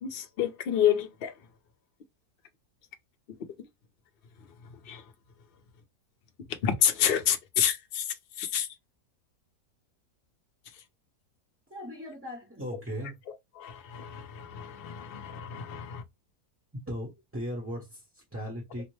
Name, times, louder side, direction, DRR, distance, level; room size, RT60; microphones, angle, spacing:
voice 1, 0.0-1.3 4.8-5.0 6.6-8.7 13.6-16.0, left 9 dB, 50° left, 0.7 m, -29 dB
voice 2, 11.7-13.2 16.9-18.8, equal, 10° right, 0.7 m, -38 dB
4.8 x 2.0 x 3.1 m
omnidirectional pair, 1.6 m